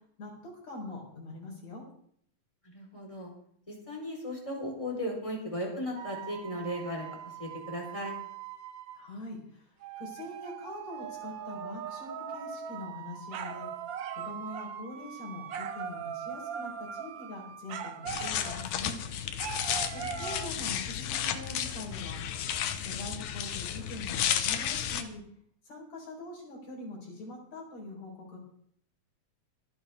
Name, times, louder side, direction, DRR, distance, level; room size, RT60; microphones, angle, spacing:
voice 1, 0.2-1.8 8.9-13.7 14.1-19.0 20.2-22.2 22.8-25.2 25.6-28.4, left 2 dB, 70° left, -2 dB, 5.9 m, -43 dB
voice 2, 2.6-3.3 3.7-7.1 7.4-8.1, equal, 10° left, -2 dB, 4.4 m, -36 dB
sound 1, 6.0-9.1 9.8-18.8 19.4-20.5, right 8 dB, 75° right, 1.1 m, -40 dB
sound 2, 18.1-25.0, left 10 dB, 85° left, 2.4 m, -33 dB
25.0 x 9.0 x 3.6 m, 0.66 s
omnidirectional pair, 3.3 m